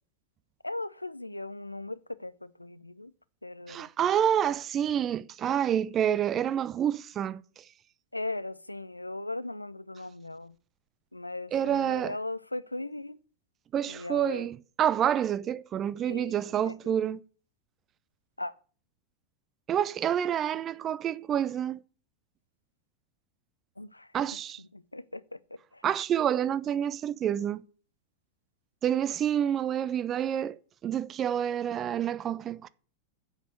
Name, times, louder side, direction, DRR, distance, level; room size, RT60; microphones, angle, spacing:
voice 1, 0.6-3.1 3.4-3.9 8.1-10.5 11.1-13.2 13.9-14.5 16.1-16.9 18.4-18.5 23.8-24.1 24.7-25.4 25.7-25.8, left 2 dB, 85° left, 0.4 m, -38 dB
voice 2, 3.7-7.6 11.5-12.2 13.7-17.2 19.7-21.8 24.1-24.6 25.8-27.6 28.8-32.7, right 9 dB, 30° right, 0.4 m, -28 dB
7.8 x 6.1 x 8.0 m
figure-of-eight pair, 90°, 0 cm